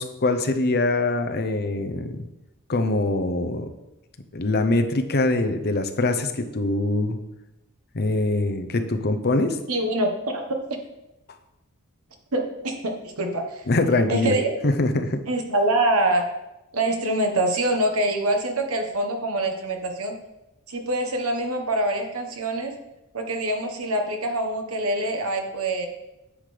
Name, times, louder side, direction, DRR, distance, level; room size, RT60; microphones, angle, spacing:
voice 1, 0.0-2.2 2.7-3.7 4.3-7.2 7.9-9.6 13.7-14.3 14.6-15.2, left 2 dB, 45° left, 7 dB, 0.8 m, -23 dB
voice 2, 9.7-10.6 12.3-13.6 14.1-14.6 15.3-16.3 16.7-20.2 20.7-22.8 23.1-25.9, right 1 dB, 70° right, 3 dB, 1.3 m, -25 dB
9.8 x 7.5 x 3.4 m, 0.95 s
head